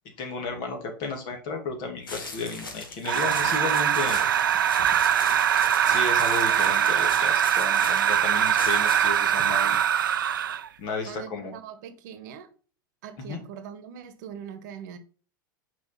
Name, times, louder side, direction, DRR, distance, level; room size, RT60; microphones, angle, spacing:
voice 1, 0.2-4.2 5.8-9.8 10.8-11.6 13.2-13.4, left 4 dB, 45° left, 2.3 m, -33 dB
sound 1, 2.1-9.2, left 3 dB, 80° left, 1.8 m, -39 dB
sound 2, 3.0-10.7, right 9 dB, 75° right, 0.5 m, -22 dB
voice 2, 11.1-12.5 13.0-15.0, right 8 dB, 60° right, 1.2 m, -41 dB
5.9 x 4.6 x 5.7 m
hypercardioid pair, 95°, 11 cm